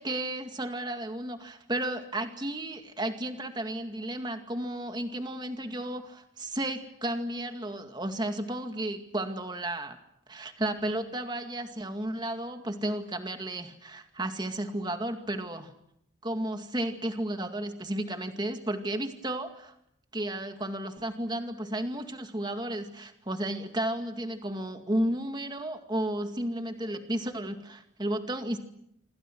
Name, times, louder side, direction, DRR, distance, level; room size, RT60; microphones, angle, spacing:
voice 1, 0.0-10.0 10.3-15.7 16.2-19.7 20.1-28.6, right 1 dB, 25° right, 6 dB, 2.2 m, -33 dB
27.0 x 27.0 x 6.3 m, 0.75 s
head